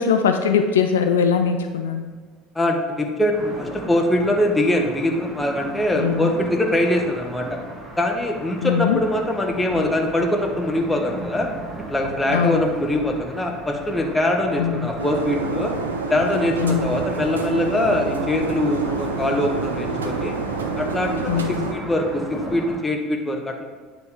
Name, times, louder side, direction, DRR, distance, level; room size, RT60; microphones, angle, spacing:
voice 1, 0.0-2.0 6.0-6.3 8.6-9.0 12.3-12.7 14.6-14.9 16.6-16.9 21.3-21.6, left 6 dB, 75° left, 7 dB, 0.4 m, -21 dB
voice 2, 2.5-7.6 8.0-11.5 11.9-15.7 16.1-20.3 20.7-23.6, left 1 dB, 10° left, 1 dB, 1.1 m, -23 dB
sound 1, 3.3-22.8, right 2 dB, 20° right, 1.6 m, -36 dB
sound 2, 15.0-21.7, right 4 dB, 85° right, 0.5 m, -28 dB
9.7 x 3.4 x 4.7 m, 1.5 s
figure-of-eight pair, 65°, 0 cm